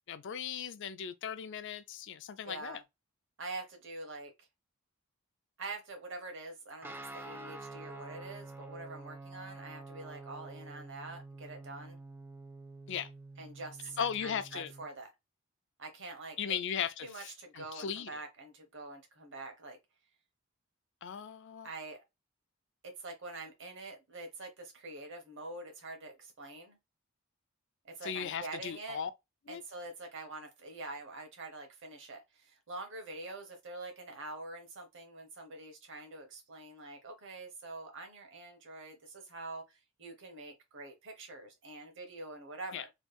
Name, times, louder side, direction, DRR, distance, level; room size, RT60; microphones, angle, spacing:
voice 1, 0.1-2.8 12.9-13.1 14.0-14.7 16.4-18.2 21.0-21.7 28.0-29.1 29.5-29.6 42.7-42.8, left 8 dB, 60° left, 0.4 m, -37 dB
voice 2, 2.4-2.8 3.4-4.3 5.6-12.0 13.4-15.1 15.8-16.6 17.0-19.8 21.6-22.0 22.8-26.8 27.8-29.0 29.5-42.9, right 2 dB, 60° right, 1.2 m, -45 dB
Guitar, 6.8-14.9, right 2 dB, 10° right, 0.4 m, -48 dB
3.2 x 2.4 x 3.4 m
head